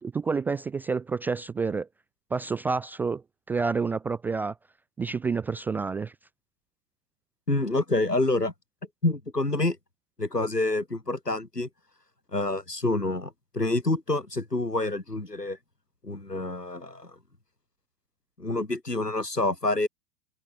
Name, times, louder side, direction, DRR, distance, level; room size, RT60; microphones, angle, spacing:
voice 1, 0.0-1.9 2.3-4.5 5.0-6.1, right 4 dB, 5° right, 0.4 m, -29 dB
voice 2, 7.5-8.5 9.0-9.8 10.2-11.7 12.3-15.6 16.0-17.1 18.4-19.9, left 2 dB, 90° left, 2.5 m, -27 dB
figure-of-eight pair, 100°, 47 cm